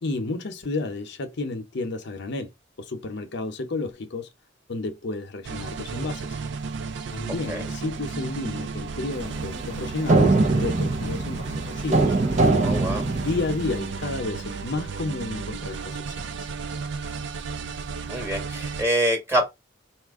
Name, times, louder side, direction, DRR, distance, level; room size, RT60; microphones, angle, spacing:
voice 1, 0.0-2.5 2.8-4.3 4.7-6.4 7.1-12.1 13.2-16.5, left 3 dB, 60° left, 0.7 m, -31 dB
sound 1, 5.4-18.8, right 4 dB, 65° right, 0.4 m, -33 dB
sound 2, 9.1-14.0, right 2 dB, 40° right, 0.7 m, -23 dB
voice 2, 12.6-13.1 18.1-19.5, right 1 dB, 15° right, 1.4 m, -25 dB
4.3 x 2.4 x 3.5 m
head